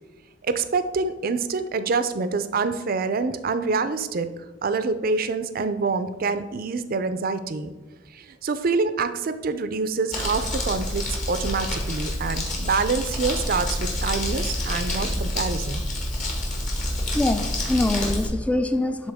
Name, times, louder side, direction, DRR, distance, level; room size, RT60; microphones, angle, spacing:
voice 1, 0.4-4.3 4.6-7.7 8.1-15.8, right 4 dB, 50° right, 11 dB, 0.5 m, -26 dB
Crumpling crinkling, 10.1-18.3, left 1 dB, 45° left, 1.6 m, -28 dB
voice 2, 17.1-19.1, left 2 dB, 5° left, 9 dB, 0.3 m, -24 dB
11.5 x 3.9 x 3.5 m, 1.3 s
head